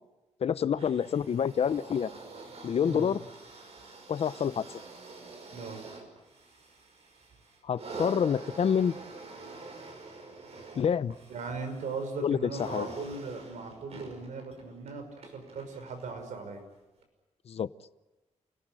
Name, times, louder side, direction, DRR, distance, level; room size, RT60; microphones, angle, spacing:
voice 1, 0.4-2.1 2.6-3.2 4.1-4.6 7.6-8.9 10.8-11.1 12.2-12.9 17.5-17.7, left 7 dB, 55° left, 16 dB, 0.8 m, -27 dB
sound 1, 0.7-16.2 17.0-17.1, right 3 dB, 60° right, 5.7 m, -46 dB
voice 2, 5.5-5.8 11.3-16.6, right 4 dB, 85° right, 6 dB, 5.6 m, -39 dB
29.0 x 18.0 x 8.9 m, 1.1 s
wide cardioid pair, 135°, 12 cm